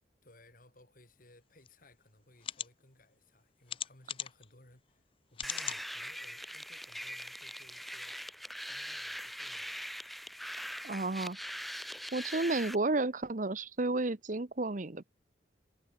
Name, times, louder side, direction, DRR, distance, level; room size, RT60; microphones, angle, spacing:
voice 1, 0.2-8.2 8.6-9.7, left 1 dB, 45° left, 5.5 m, -61 dB
sound 1, 1.6-1.7 2.4-2.7 3.7-4.5 5.3-5.8 6.4-6.5 6.8-6.9, left 9 dB, 30° left, 0.5 m, -38 dB
sound 2, 5.4-12.7, equal, ahead, 1.3 m, -42 dB
voice 2, 10.8-11.4 12.1-15.0, right 2 dB, 45° right, 1.0 m, -32 dB
head